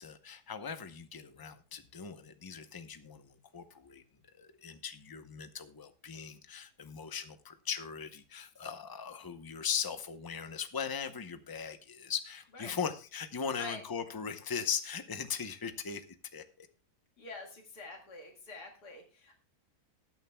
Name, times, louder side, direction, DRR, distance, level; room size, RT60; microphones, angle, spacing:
voice 1, 0.0-4.0 4.3-16.0 16.3-16.7, left 7 dB, 30° left, 9 dB, 0.4 m, -39 dB
voice 2, 17.2-19.3, left 3 dB, 85° left, 2 dB, 2.5 m, -46 dB
19.5 x 9.1 x 2.2 m, 0.34 s
omnidirectional pair, 1.7 m